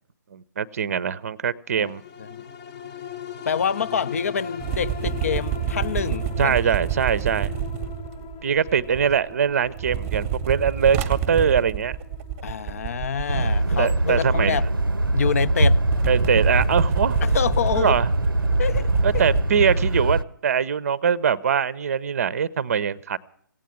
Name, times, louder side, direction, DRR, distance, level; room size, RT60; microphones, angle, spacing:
voice 1, 0.3-2.0 6.4-7.5 8.4-12.0 13.8-14.6 16.1-17.2 17.7-18.1 19.0-23.2, right 7 dB, 45° right, 0.6 m, -22 dB
sound 1, 1.8-16.4 16.9-17.0, left 8 dB, 20° left, 0.9 m, -40 dB
voice 2, 3.4-6.6 12.4-14.7 15.1-15.8 17.2-18.0 18.6-18.9, left 7 dB, 45° left, 0.5 m, -26 dB
sound 2, 4.6-9.3 9.6-19.4, right 10 dB, 15° right, 0.9 m, -29 dB
sound 3, 13.3-20.2, right 1 dB, 85° right, 0.6 m, -22 dB
16.0 x 9.2 x 9.2 m
figure-of-eight pair, 140°, 11 cm